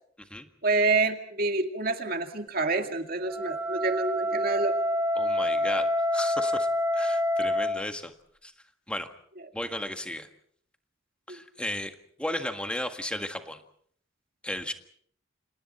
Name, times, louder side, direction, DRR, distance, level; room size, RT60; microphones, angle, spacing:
voice 1, 0.6-4.8 11.3-11.4, right 3 dB, 50° right, 5 dB, 2.2 m, -27 dB
Wind instrument woodwind instrument, 3.2-7.8, left 1 dB, 10° right, 1.5 m, -27 dB
voice 2, 5.1-6.7 6.9-8.1 8.4-8.5 8.9-9.1 9.5-10.3 11.3-13.6 14.4-14.7, left 1 dB, 5° left, 6 dB, 1.7 m, -34 dB
29.5 x 27.0 x 4.3 m, 0.62 s
head